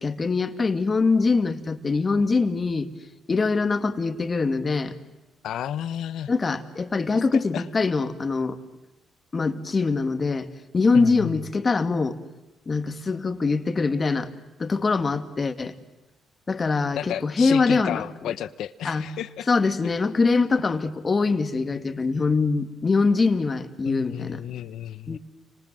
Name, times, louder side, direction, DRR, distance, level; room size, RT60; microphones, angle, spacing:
voice 1, 0.0-2.9 3.3-5.0 6.3-8.6 9.3-10.5 10.7-12.2 12.7-14.3 14.6-15.8 16.5-18.0 18.8-19.1 19.5-24.4 25.1-25.2, left 4 dB, 30° left, 9 dB, 2.3 m, -23 dB
voice 2, 5.4-6.3 7.3-7.6 10.9-11.4 17.0-19.5 23.8-25.2, left 11 dB, 75° left, 13 dB, 1.0 m, -32 dB
29.5 x 26.0 x 7.7 m, 1.0 s
cardioid pair, 90°, 0 cm